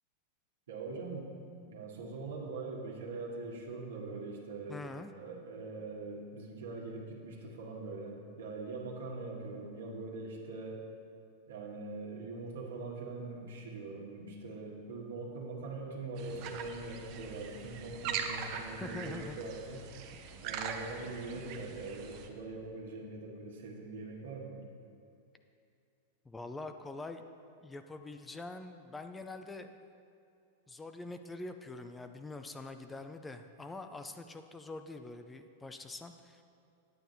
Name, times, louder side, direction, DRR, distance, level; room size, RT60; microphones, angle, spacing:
voice 1, 0.7-1.3 1.6-10.8 11.5-19.8 20.4-24.6, right 3 dB, 80° right, -2 dB, 1.7 m, -42 dB
voice 2, 4.7-5.1 18.8-19.4 26.2-27.2 27.6-29.7 30.7-36.4, left 2 dB, 15° left, 7 dB, 0.5 m, -44 dB
sound 1, 16.2-22.3, right 7 dB, 50° right, 0.9 m, -42 dB
9.3 x 8.8 x 4.1 m, 2.6 s
hypercardioid pair, 105°, 0 cm